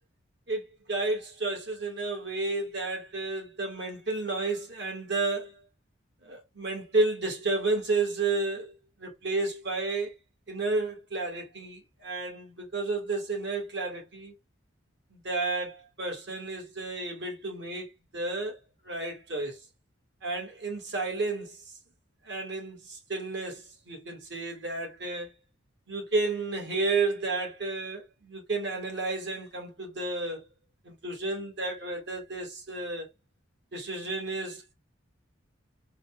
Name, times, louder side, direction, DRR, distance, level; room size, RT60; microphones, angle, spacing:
voice 1, 0.5-5.6 6.2-8.7 9.0-10.1 10.5-14.3 15.1-17.9 18.1-18.6 18.8-19.6 20.2-21.6 22.2-25.3 25.9-30.5 30.8-33.1 33.7-34.7, right 3 dB, 60° right, 1.5 m, -31 dB
3.9 x 2.2 x 3.1 m
head